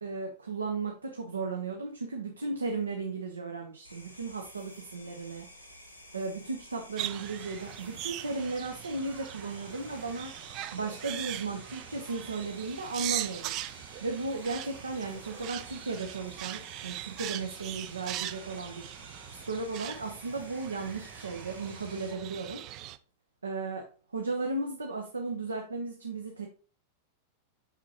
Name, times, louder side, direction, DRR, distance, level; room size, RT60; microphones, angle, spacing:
voice 1, 0.0-5.5 6.1-10.3 10.7-13.6 14.0-22.6 23.4-26.5, right 3 dB, 75° right, 3 dB, 0.8 m, -35 dB
sound 1, 3.8-22.1, left 1 dB, 90° left, 1.7 m, -52 dB
sound 2, 7.0-23.0, right 14 dB, 40° right, 0.4 m, -41 dB
5.9 x 5.8 x 2.9 m, 0.37 s
figure-of-eight pair, 90°, 0 cm